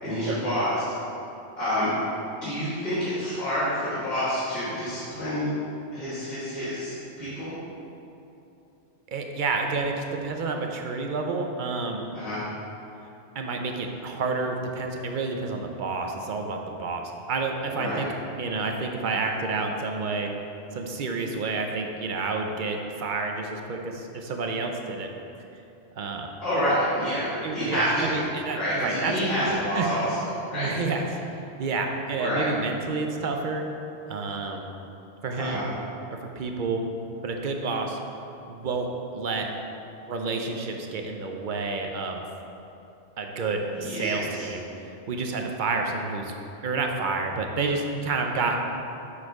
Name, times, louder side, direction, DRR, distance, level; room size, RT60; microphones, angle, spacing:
voice 1, 0.0-0.8 1.6-1.9 2.4-5.5 5.9-7.5 12.1-12.4 17.7-18.0 26.4-28.2 28.5-30.2 30.4-30.7 32.2-32.5 35.3-35.7 43.7-44.5, equal, 55° left, -13 dB, 2.0 m, -28 dB
voice 2, 9.1-12.1 13.3-18.1 18.4-20.3 20.7-25.1 26.0-26.3 27.4-29.1 29.5-29.9 30.5-31.1 31.6-33.6 34.1-34.7 35.2-35.7 36.4-36.9 37.2-38.0 38.5-39.5 40.1-42.2 43.2-46.3 46.6-48.6, right 3 dB, 50° right, 3 dB, 0.7 m, -29 dB
7.4 x 4.4 x 4.7 m, 2.8 s
omnidirectional pair, 1.2 m